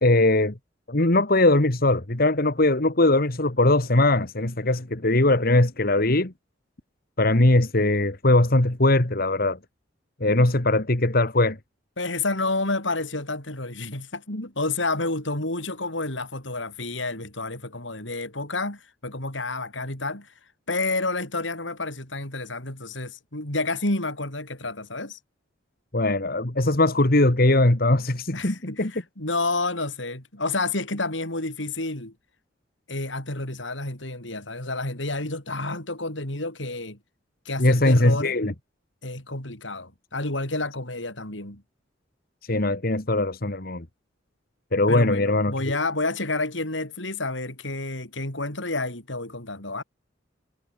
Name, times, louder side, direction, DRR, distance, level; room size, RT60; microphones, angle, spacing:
voice 1, 0.0-0.5 0.9-6.3 7.2-9.6 10.2-11.6 25.9-28.9 37.6-38.5 42.5-43.8 44.7-45.5, left 2 dB, 55° left, 2.1 m, -20 dB
voice 2, 12.0-20.3 20.7-25.2 28.3-32.1 32.9-37.0 37.4-38.3 39.0-41.6 44.9-49.8, left 2 dB, 80° left, 6.9 m, -30 dB
head